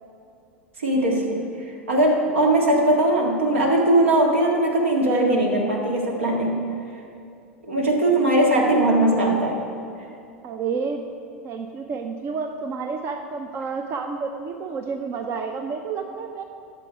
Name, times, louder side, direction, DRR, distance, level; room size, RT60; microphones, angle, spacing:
voice 1, 0.8-1.5 1.9-6.6 7.6-9.6, right 1 dB, 75° right, 0 dB, 1.8 m, -20 dB
voice 2, 10.4-11.0 11.4-16.4, right 5 dB, 35° right, 6 dB, 0.6 m, -30 dB
11.5 x 6.8 x 4.9 m, 2.5 s
figure-of-eight pair, 85°, 7 cm